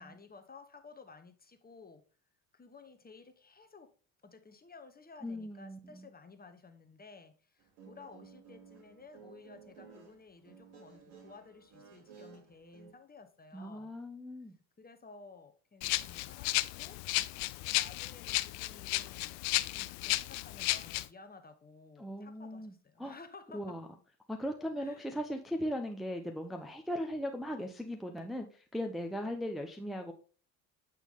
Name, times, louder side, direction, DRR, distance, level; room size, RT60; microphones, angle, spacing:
voice 1, 0.0-2.0 2.5-3.9 4.2-14.0 14.8-17.0 17.6-23.8 24.8-25.1 29.2-29.3, left 4 dB, 20° left, 1.1 m, -55 dB
voice 2, 5.2-6.0 13.5-14.6 22.0-22.7 23.0-23.2 23.5-23.9 24.3-30.1, equal, ahead, 0.8 m, -38 dB
Guitar, 7.6-12.9, right 6 dB, 65° right, 2.5 m, -55 dB
Rattle (instrument), 15.8-21.1, left 19 dB, 70° left, 0.5 m, -34 dB
8.0 x 4.5 x 3.6 m
hypercardioid pair, 60°, 44 cm